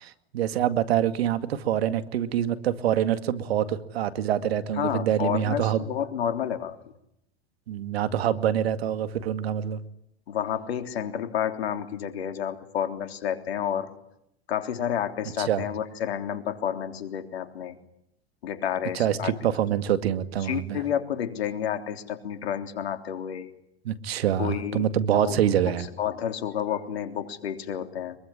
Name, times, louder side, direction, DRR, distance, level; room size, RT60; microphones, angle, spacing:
voice 1, 0.3-5.9 7.7-9.8 15.4-15.7 18.9-20.8 23.8-25.9, right 10 dB, 75° right, 11 dB, 2.2 m, -25 dB
voice 2, 4.8-6.8 10.3-13.9 14.5-17.8 18.4-19.3 20.4-23.5 24.4-24.8 25.1-25.4 25.7-28.2, left 9 dB, 80° left, 7 dB, 3.4 m, -30 dB
24.5 x 22.5 x 10.0 m, 0.79 s
hypercardioid pair, 100°, 31 cm